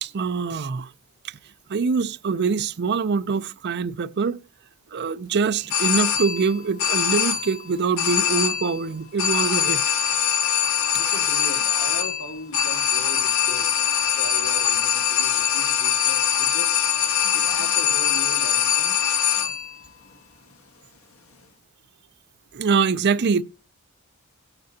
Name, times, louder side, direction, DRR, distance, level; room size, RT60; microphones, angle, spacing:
voice 1, 0.0-0.9 1.2-1.4 1.7-4.4 4.9-9.8 22.5-23.4, right 5 dB, 50° right, 0.5 m, -24 dB
sound 1, 5.7-6.5 6.8-7.6 8.0-8.8 9.2-19.7, left 9 dB, 75° left, 1.5 m, -22 dB
voice 2, 11.0-13.7 14.2-16.8 17.3-19.0, left 2 dB, 90° left, 2.8 m, -38 dB
17.5 x 8.8 x 2.8 m
head